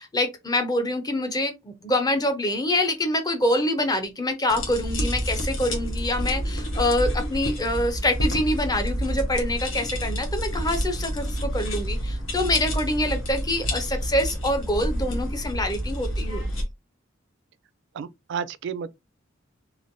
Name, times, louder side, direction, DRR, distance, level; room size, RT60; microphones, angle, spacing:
voice 1, 0.0-16.4, left 1 dB, 20° left, 0.6 m, -25 dB
sound 1, 4.5-16.6, equal, 85° left, 1.0 m, -28 dB
voice 2, 17.9-18.9, right 7 dB, 65° right, 0.3 m, -32 dB
3.1 x 2.5 x 2.6 m
head